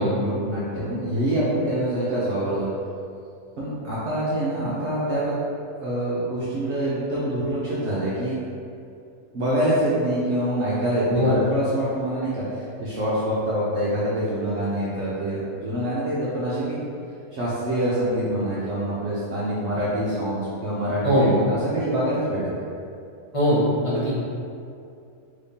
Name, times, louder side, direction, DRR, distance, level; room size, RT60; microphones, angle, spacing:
voice 1, 0.0-2.7 3.6-5.4 5.8-8.4 9.3-16.8 17.3-22.4, right 1 dB, 60° right, -8 dB, 0.8 m, -25 dB
voice 2, 23.3-24.1, equal, 35° left, -8 dB, 0.6 m, -20 dB
3.5 x 3.2 x 2.7 m, 2.5 s
omnidirectional pair, 1.7 m